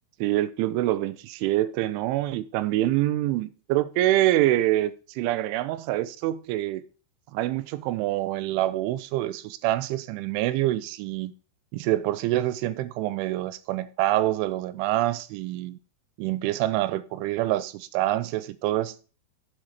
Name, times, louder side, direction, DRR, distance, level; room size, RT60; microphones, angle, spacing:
voice 1, 0.2-6.8 7.3-11.3 11.7-15.8 16.2-19.0, right 15 dB, 80° right, 3.0 m, -26 dB
7.8 x 7.4 x 6.4 m
omnidirectional pair, 5.7 m